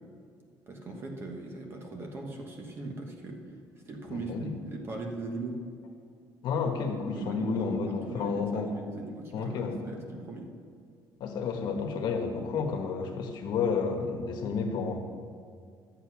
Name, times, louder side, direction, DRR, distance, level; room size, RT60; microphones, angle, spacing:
voice 1, 0.7-3.4 3.9-5.6 7.1-10.5, right 2 dB, 30° right, 2 dB, 1.3 m, -39 dB
voice 2, 4.1-4.5 6.4-8.7 9.3-9.8 11.2-15.0, left 5 dB, 60° left, 4 dB, 1.3 m, -31 dB
11.5 x 7.9 x 6.0 m, 2.1 s
cardioid pair, 170°, 8 cm